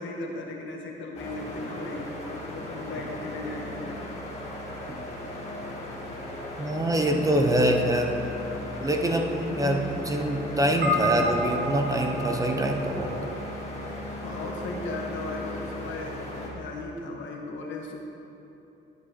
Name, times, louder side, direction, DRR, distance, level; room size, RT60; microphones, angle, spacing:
voice 1, 0.0-4.0 9.4-9.8 10.5-11.1 14.0-16.2 16.5-18.0, left 2 dB, 70° left, 0 dB, 1.2 m, -37 dB
sound 1, 1.1-16.5, left 1 dB, 30° left, 2.0 m, -37 dB
voice 2, 6.6-8.2 8.8-13.1, right 1 dB, 15° right, 2 dB, 0.7 m, -25 dB
sound 2, 10.8-15.4, equal, 65° right, 1.3 m, -32 dB
10.5 x 7.7 x 2.9 m, 2.9 s
cardioid pair, 90°, 20 cm